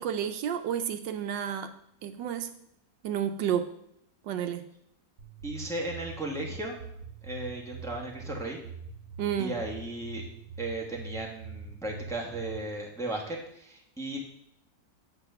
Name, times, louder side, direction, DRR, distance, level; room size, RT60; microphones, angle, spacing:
voice 1, 0.0-1.7 2.0-2.5 3.0-3.7 4.2-4.6 9.2-9.5, right 9 dB, 80° right, 8 dB, 1.3 m, -30 dB
sound 1, 5.2-12.6, right 3 dB, 60° right, 1.9 m, -43 dB
voice 2, 5.4-6.7 7.2-8.6 9.4-10.3 10.6-14.3, right 2 dB, ahead, -1 dB, 1.1 m, -36 dB
8.1 x 4.1 x 6.8 m, 0.74 s
omnidirectional pair, 2.0 m